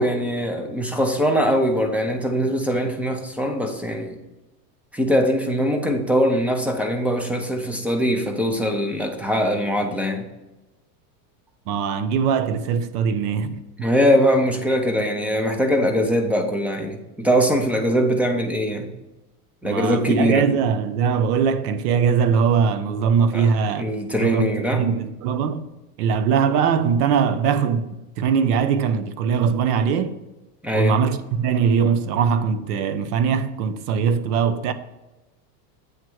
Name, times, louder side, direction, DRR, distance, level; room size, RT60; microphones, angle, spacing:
voice 1, 0.0-4.2 4.9-10.3 13.8-18.9 19.6-20.5 23.3-23.5 23.8-24.9 30.6-30.9, equal, 5° right, 0.5 m, -22 dB
voice 2, 11.7-13.6 19.6-23.9 24.2-25.7 26.0-30.1 30.7-34.7, right 6 dB, 70° right, 0.8 m, -21 dB
8.2 x 3.1 x 6.2 m
supercardioid pair, 125°, 48 cm